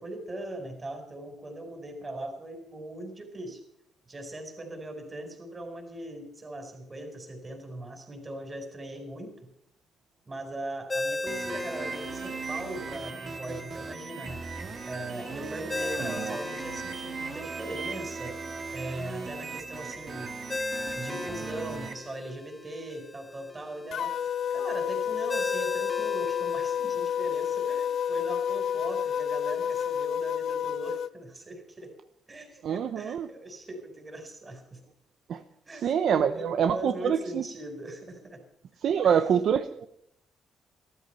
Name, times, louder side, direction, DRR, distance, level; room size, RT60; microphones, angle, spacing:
voice 1, 0.0-3.6 4.1-9.5 10.3-14.4 14.9-18.4 18.7-20.4 21.0-24.1 24.5-31.9 32.3-34.8 35.7-38.4 39.0-39.2, right 1 dB, 20° right, 5 dB, 4.7 m, -40 dB
Ringtone, 10.9-30.0, left 2 dB, 15° left, 0.6 m, -40 dB
sound 1, 11.3-21.9, right 4 dB, 35° right, 2.0 m, -38 dB
sound 2, 23.9-31.1, left 8 dB, 60° left, 0.7 m, -30 dB
voice 2, 32.6-33.3 35.3-35.4 35.7-37.4 38.8-39.9, right 8 dB, 55° right, 9 dB, 0.9 m, -25 dB
15.5 x 14.0 x 5.7 m, 0.72 s
cardioid pair, 150°, 0 cm